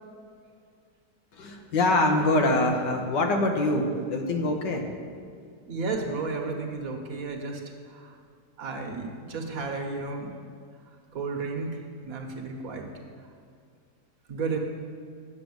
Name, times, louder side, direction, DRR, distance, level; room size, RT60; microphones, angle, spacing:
voice 1, 1.4-4.8 5.4-5.5, left 2 dB, 90° left, 3 dB, 1.8 m, -24 dB
voice 2, 5.7-7.6 7.9-8.1 8.6-10.3 11.1-11.7 12.0-12.9 14.3-14.6, right 4 dB, 60° right, 3 dB, 1.5 m, -32 dB
8.5 x 6.6 x 7.8 m, 2.2 s
omnidirectional pair, 1.8 m